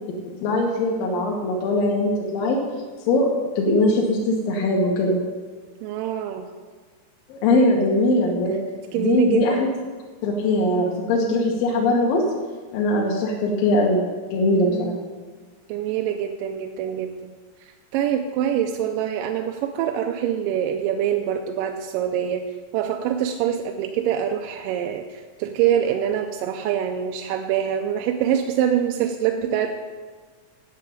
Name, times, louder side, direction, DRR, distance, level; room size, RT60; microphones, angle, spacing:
voice 1, 0.4-2.6 3.1-5.2 7.3-8.6 9.0-9.7 10.2-12.2 12.7-14.0 14.3-14.9, left 1 dB, 85° left, -1 dB, 3.0 m, -21 dB
voice 2, 5.8-6.5 8.9-9.7 14.6-15.0 15.7-17.3 17.6-22.5 22.7-29.7, right 9 dB, 85° right, 4 dB, 2.2 m, -25 dB
9.6 x 6.7 x 8.5 m, 1.4 s
omnidirectional pair, 4.0 m